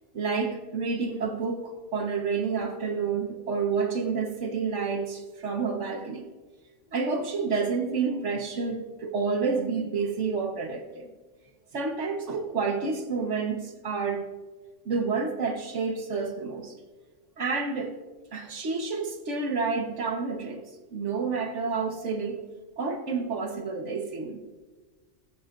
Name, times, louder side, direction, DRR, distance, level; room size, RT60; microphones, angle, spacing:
voice 1, 0.1-6.3 6.9-11.1 11.7-14.2 14.8-16.7 17.4-17.9 18.3-20.6 20.9-22.4 22.8-24.4, right 4 dB, 70° right, 4 dB, 1.6 m, -29 dB
15.0 x 13.5 x 2.6 m, 1.3 s
omnidirectional pair, 1.3 m